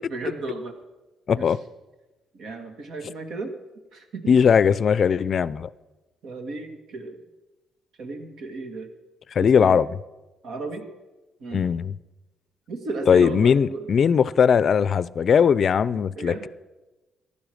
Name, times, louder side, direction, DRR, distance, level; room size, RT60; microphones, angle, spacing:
voice 1, 0.1-0.7 1.3-1.5 2.3-3.5 3.9-4.3 6.2-7.2 8.0-8.9 9.4-9.8 10.4-10.9 11.4-11.7 12.7-13.9 15.8-16.5, right 3 dB, 70° right, 2.0 m, -34 dB
voice 2, 1.3-1.6 4.3-5.7 9.3-9.9 11.5-11.9 13.1-16.5, left 7 dB, 50° left, 0.4 m, -19 dB
15.0 x 11.0 x 6.4 m
cardioid pair, 90°, 0 cm